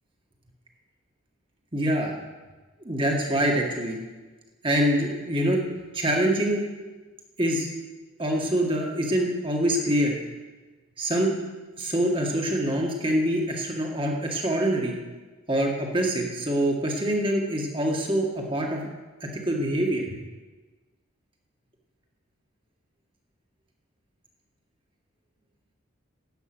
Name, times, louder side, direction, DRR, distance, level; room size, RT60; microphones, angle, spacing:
voice 1, 1.7-2.1 2.8-4.0 4.6-5.6 5.9-6.9 7.4-7.7 8.2-10.1 11.0-11.4 11.8-14.9 15.5-18.9 19.4-20.1, right 1 dB, 25° right, 0 dB, 1.8 m, -25 dB
13.0 x 8.8 x 6.2 m, 1.3 s
head